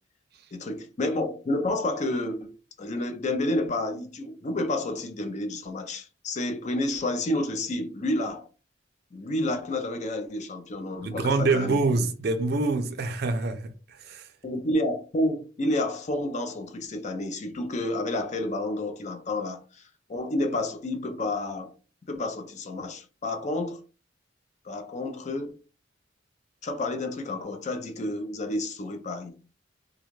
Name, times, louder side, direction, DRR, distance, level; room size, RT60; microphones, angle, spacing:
voice 1, 0.5-8.5 9.1-11.8 14.4-19.8 20.1-21.7 22.1-23.8 24.6-25.5 26.6-29.4, left 1 dB, 35° left, 0.4 m, -30 dB
voice 2, 11.0-14.3, right 3 dB, 55° right, 0.4 m, -26 dB
2.4 x 2.3 x 3.0 m
head